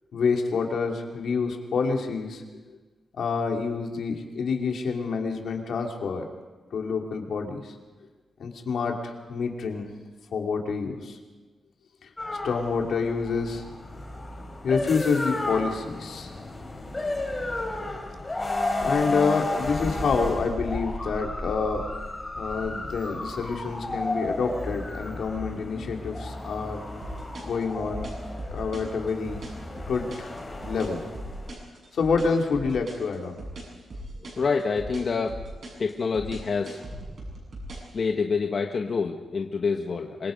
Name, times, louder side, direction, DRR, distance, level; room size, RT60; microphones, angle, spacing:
voice 1, 0.1-2.4 3.2-6.2 6.7-7.7 8.4-9.9 10.3-11.2 12.0-12.1 12.4-13.6 14.6-16.3 18.8-21.9 22.4-26.8 27.4-28.1 28.5-29.4 29.9-30.3 30.7-31.2 31.9-33.4, left 5 dB, 70° left, 2 dB, 3.0 m, -27 dB
sound 1, 12.2-31.5, left 2 dB, 15° left, 3.4 m, -33 dB
sound 2, 27.0-37.9, right 1 dB, 45° right, 7.4 m, -39 dB
voice 2, 34.4-35.4 35.8-36.8 37.9-40.3, left 5 dB, 45° left, 3 dB, 1.2 m, -27 dB
26.0 x 23.5 x 5.3 m, 1.3 s
wide cardioid pair, 165°, 0 cm